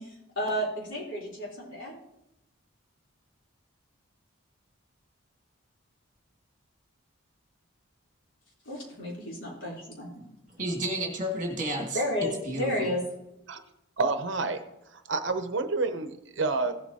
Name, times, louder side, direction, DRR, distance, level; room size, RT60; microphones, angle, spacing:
voice 1, 0.0-2.0 8.6-10.2 11.9-13.0, equal, 65° left, -4 dB, 3.4 m, -32 dB
voice 2, 10.5-13.0, right 1 dB, 35° right, 1 dB, 1.9 m, -32 dB
voice 3, 14.0-14.6 14.9-16.8, right 3 dB, 60° right, 9 dB, 0.7 m, -29 dB
16.5 x 7.8 x 2.8 m, 0.87 s
head